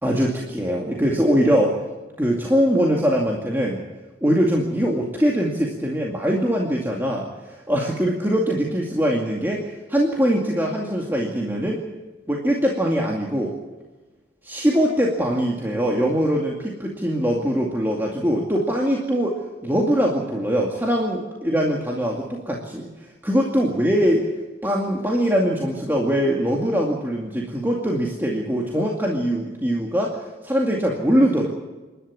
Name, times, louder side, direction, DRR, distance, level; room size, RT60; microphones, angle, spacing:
voice 1, 0.0-1.8 2.2-3.8 4.2-11.8 12.3-13.6 14.4-24.2 24.6-31.5, equal, 10° right, -2 dB, 2.3 m, -22 dB
27.5 x 12.0 x 8.7 m, 1.2 s
head